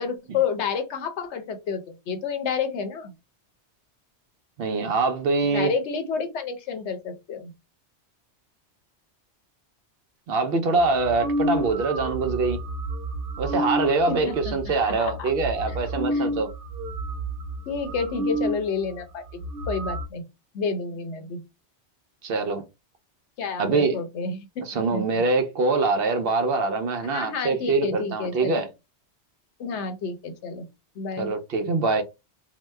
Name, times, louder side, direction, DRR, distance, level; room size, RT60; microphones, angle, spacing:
voice 1, 0.0-3.1 5.5-7.5 14.1-14.6 14.8-15.3 15.7-15.8 16.1-16.2 17.7-19.2 19.7-20.2 20.5-21.4 23.4-24.5 24.7-25.0 27.0-28.6 29.6-30.7 31.0-31.3, left 5 dB, 80° left, 1.0 m, -30 dB
voice 2, 4.6-5.7 10.3-12.6 13.4-16.5 22.2-22.6 23.6-24.0 24.7-28.7 31.2-32.0, right 3 dB, 65° right, 0.8 m, -24 dB
sound 1, 10.8-18.6 19.0-19.1 19.3-20.0, right 1 dB, 85° right, 0.9 m, -30 dB
2.9 x 2.0 x 3.2 m
omnidirectional pair, 1.2 m